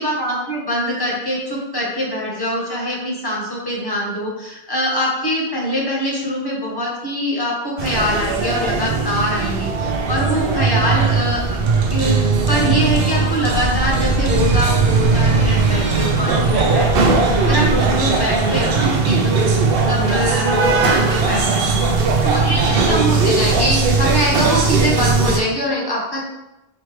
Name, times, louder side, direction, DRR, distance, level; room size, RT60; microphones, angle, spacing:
voice 1, 0.0-11.4 11.9-12.2 12.5-21.8 22.2-26.2, equal, 25° left, -4 dB, 1.0 m, -23 dB
sound 1, 7.8-25.4, right 4 dB, 70° right, 0.8 m, -18 dB
4.2 x 3.1 x 3.2 m, 0.93 s
omnidirectional pair, 1.0 m